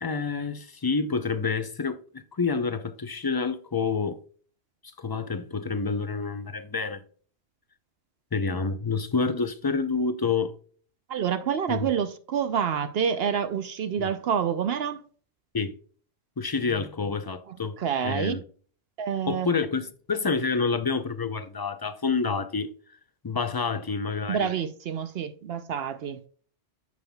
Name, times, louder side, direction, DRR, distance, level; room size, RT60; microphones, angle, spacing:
voice 1, 0.0-4.2 5.0-7.0 8.3-10.5 11.7-11.9 14.0-14.1 15.5-15.7 16.4-17.8 18.0-18.4 19.3-22.7 23.2-24.5, left 4 dB, 30° left, 0.4 m, -28 dB
voice 2, 11.1-15.0 17.5-18.4 19.0-19.5 24.3-26.2, right 7 dB, 65° right, 0.8 m, -28 dB
9.4 x 7.1 x 2.3 m
omnidirectional pair, 1.1 m